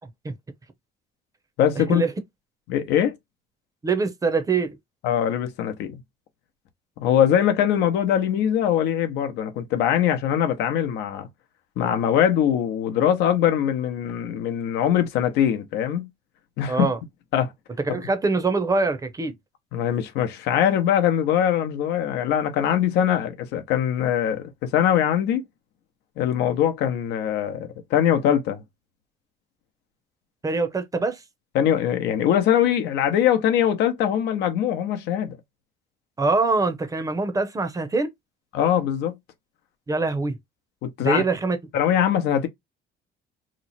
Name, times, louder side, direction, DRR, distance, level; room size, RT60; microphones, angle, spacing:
voice 1, 1.6-2.0 2.7-3.1 5.0-6.0 7.0-11.3 11.8-16.1 16.6-16.9 17.3-17.5 19.7-25.4 26.2-28.6 31.5-35.4 38.5-39.2 40.8-41.2 41.7-42.5, left 9 dB, 85° left, 0.7 m, -22 dB
voice 2, 3.8-4.7 16.7-17.0 17.8-19.3 30.4-31.2 36.2-38.1 39.9-40.4 41.0-41.6, right 3 dB, 20° right, 0.6 m, -23 dB
3.0 x 2.0 x 4.0 m
cardioid pair, 110°, 17 cm